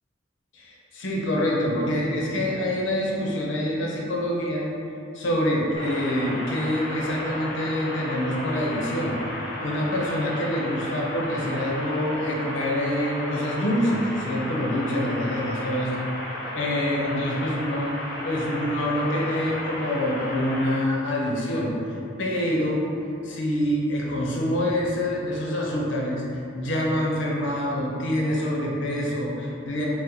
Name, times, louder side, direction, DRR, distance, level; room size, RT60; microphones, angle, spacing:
voice 1, 0.5-4.7 5.1-9.2 9.6-16.1 16.5-22.8 23.2-29.9, left 1 dB, 90° left, -3 dB, 0.6 m, -26 dB
sound 1, 5.7-20.7, left 1 dB, 55° left, 0.6 m, -34 dB
2.9 x 2.0 x 3.8 m, 2.6 s
head